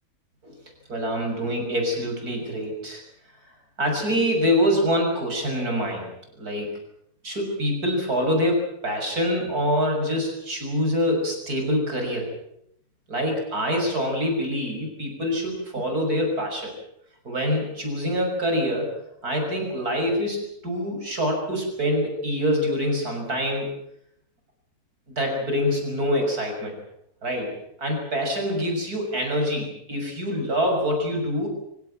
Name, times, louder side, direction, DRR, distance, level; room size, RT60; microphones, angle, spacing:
voice 1, 0.9-3.0 3.8-6.7 7.2-12.3 13.1-16.7 17.2-19.0 19.2-23.7 25.1-26.7 27.2-27.5 27.8-31.5, equal, 80° right, 2 dB, 7.1 m, -25 dB
24.5 x 17.0 x 8.8 m, 0.75 s
omnidirectional pair, 1.6 m